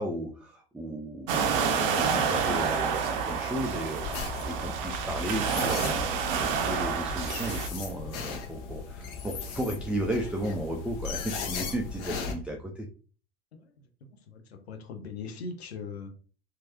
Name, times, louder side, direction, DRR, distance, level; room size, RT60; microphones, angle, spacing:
voice 1, 0.0-12.9, right 1 dB, 5° right, 1 dB, 0.3 m, -35 dB
sound 1, 1.3-7.7, right 6 dB, 60° right, 0.6 m, -28 dB
sound 2, 3.9-12.3, left 5 dB, 55° left, 0.9 m, -37 dB
voice 2, 14.3-16.1, left 4 dB, 80° left, 4 dB, 0.7 m, -39 dB
3.0 x 2.4 x 2.8 m, 0.39 s
figure-of-eight pair, 75°, 31 cm